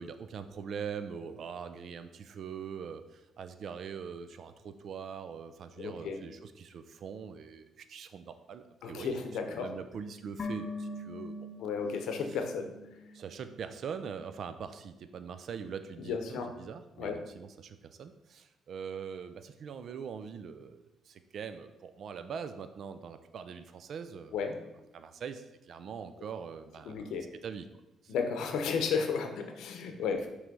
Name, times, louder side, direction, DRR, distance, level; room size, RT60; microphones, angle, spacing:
voice 1, 0.0-9.2 9.5-11.4 12.3-12.4 13.1-24.3 24.9-27.1 27.4-27.7 28.0-28.1 29.9-30.3, right 6 dB, 60° right, 10 dB, 0.4 m, -42 dB
voice 2, 5.8-6.2 8.8-9.7 11.6-12.7 16.0-16.5 17.0-17.2 24.3-24.6 26.8-27.3 28.1-30.3, left 5 dB, 80° left, 5 dB, 0.7 m, -33 dB
sound 1, 10.4-13.7 14.0-14.1, left 1 dB, 45° left, 0.7 m, -42 dB
5.9 x 3.2 x 5.3 m, 0.97 s
cardioid pair, 90°, 0 cm